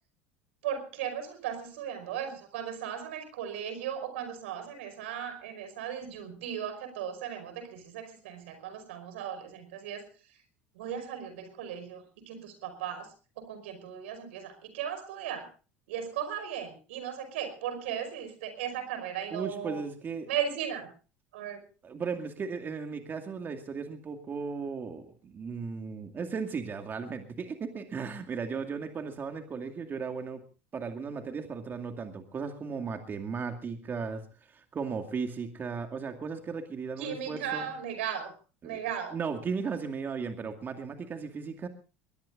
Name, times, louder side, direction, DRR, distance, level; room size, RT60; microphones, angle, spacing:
voice 1, 0.6-10.1 10.8-13.1 13.4-15.5 15.9-19.8 20.3-20.9 21.3-21.6 37.0-38.3 38.6-39.2, right 9 dB, 80° right, 10 dB, 5.3 m, -36 dB
voice 2, 19.3-20.3 21.8-30.4 30.7-37.7 38.6-38.8 39.1-41.7, right 5 dB, 35° right, 6 dB, 2.2 m, -36 dB
22.5 x 20.0 x 2.6 m, 0.35 s
hypercardioid pair, 85°, 6 cm